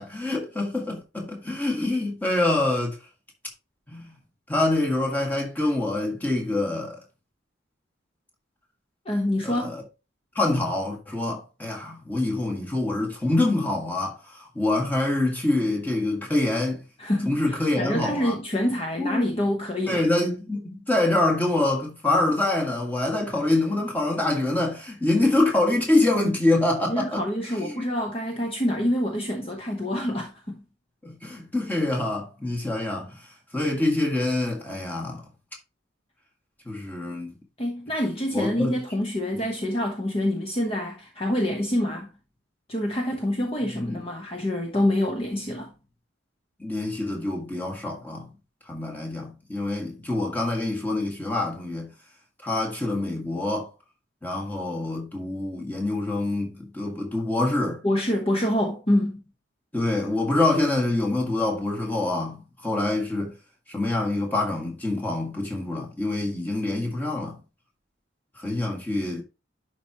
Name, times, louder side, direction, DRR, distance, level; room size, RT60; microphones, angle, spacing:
voice 1, 0.0-3.0 3.9-4.1 4.5-7.0 9.4-9.8 10.4-16.8 17.3-18.4 19.0-19.3 19.9-27.2 27.5-27.8 31.0-33.2 33.5-35.2 36.7-37.3 38.3-38.8 39.3-39.4 43.7-44.0 46.6-48.3 48.7-51.9 52.4-53.7 54.2-57.8 59.7-63.3 63.7-67.4 68.4-69.2, left 2 dB, 10° left, 1.8 m, -25 dB
voice 2, 9.1-9.8 17.0-17.3 17.8-20.0 26.9-30.6 37.6-42.1 42.7-45.7 57.8-59.2, left 1 dB, 30° left, 1.0 m, -26 dB
11.0 x 4.7 x 2.9 m
head